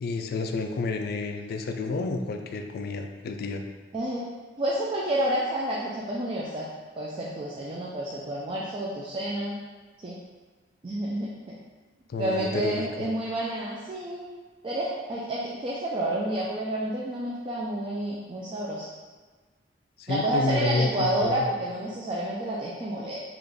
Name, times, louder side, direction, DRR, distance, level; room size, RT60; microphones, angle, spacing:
voice 1, 0.0-3.6 12.1-13.1 20.0-21.5, left 3 dB, 55° left, 5 dB, 0.3 m, -30 dB
voice 2, 3.9-4.3 4.6-6.6 7.0-9.6 10.0-10.2 10.8-11.6 12.2-14.3 14.6-18.9 20.1-23.2, right 1 dB, 25° right, -5 dB, 0.4 m, -29 dB
3.8 x 2.4 x 3.4 m, 1.4 s
head